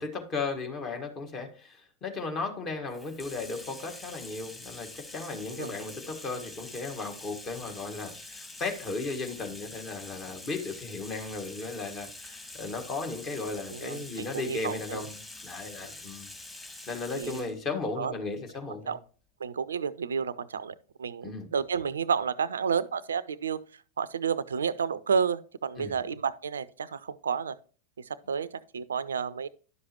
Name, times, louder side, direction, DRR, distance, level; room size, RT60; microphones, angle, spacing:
voice 1, 0.0-16.3 16.5-19.0 21.2-21.5 25.8-26.0, left 3 dB, 30° left, 1.6 m, -36 dB
Bathtub (filling or washing), 2.9-17.6, left 2 dB, 10° left, 1.9 m, -46 dB
voice 2, 13.7-15.0 17.1-17.4 18.0-18.1 18.9-19.0 19.4-23.6 24.0-27.6 28.1-29.5, right 6 dB, 70° right, 0.4 m, -31 dB
11.0 x 6.4 x 3.0 m
figure-of-eight pair, 90°, 0 cm